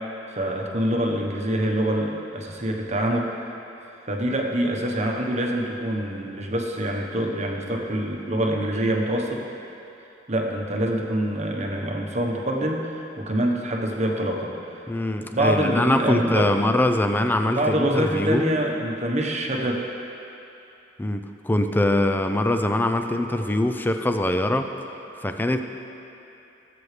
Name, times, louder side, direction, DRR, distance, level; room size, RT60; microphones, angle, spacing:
voice 1, 0.3-3.3 4.1-9.4 10.3-14.5 15.3-16.5 17.5-19.8, right 1 dB, 35° right, 0 dB, 1.1 m, -25 dB
voice 2, 14.9-18.4 21.0-24.7 25.2-25.6, left 1 dB, 10° left, 6 dB, 0.5 m, -23 dB
18.0 x 7.8 x 3.3 m, 2.8 s
head